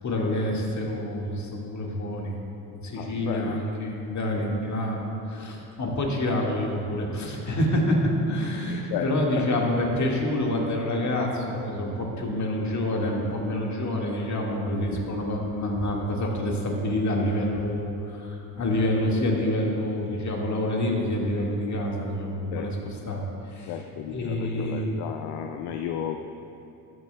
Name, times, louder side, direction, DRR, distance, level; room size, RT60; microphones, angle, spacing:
voice 1, 0.0-2.4 2.7-23.7 24.1-24.9, left 1 dB, 35° left, -1 dB, 1.8 m, -27 dB
voice 2, 3.0-3.6 8.7-9.1 9.4-9.5 22.5-22.7 23.7-26.2, left 9 dB, 55° left, 6 dB, 0.5 m, -33 dB
13.0 x 9.2 x 2.2 m, 2.7 s
hypercardioid pair, 60°, 47 cm